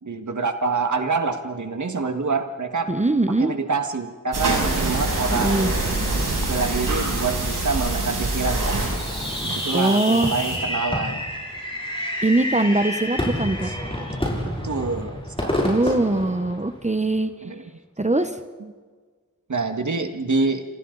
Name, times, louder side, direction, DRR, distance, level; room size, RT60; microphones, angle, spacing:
voice 1, 0.0-2.9 3.4-5.8 6.5-8.8 9.4-11.2 14.4-15.7 17.4-17.6 19.5-20.7, right 4 dB, 65° right, 6 dB, 1.9 m, -26 dB
voice 2, 2.9-3.5 5.3-5.7 9.7-10.3 12.2-13.7 15.6-17.3 18.0-18.4, right 2 dB, 20° right, 9 dB, 1.0 m, -21 dB
sound 1, 4.3-10.6, right 2 dB, 90° right, 7.2 m, -25 dB
Fireworks, 8.9-17.0, left 1 dB, 15° left, 7.0 m, -28 dB
29.5 x 26.5 x 4.0 m, 1.5 s
wide cardioid pair, 75°, 32 cm